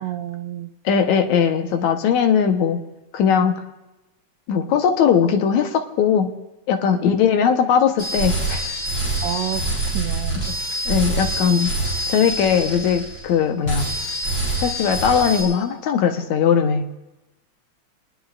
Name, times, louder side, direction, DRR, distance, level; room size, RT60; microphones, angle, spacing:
voice 1, 0.0-0.7 9.2-10.4, right 11 dB, 90° right, 8 dB, 1.2 m, -29 dB
voice 2, 0.9-2.8 3.1-3.5 4.5-6.3 6.7-8.7 10.9-11.7 12.1-13.9 14.6-16.9, left 7 dB, 80° left, 5 dB, 2.5 m, -19 dB
sound 1, 8.0-13.3 13.6-15.4, right 2 dB, 40° left, 9.0 m, -25 dB
29.0 x 19.5 x 2.6 m, 1.0 s
omnidirectional pair, 3.3 m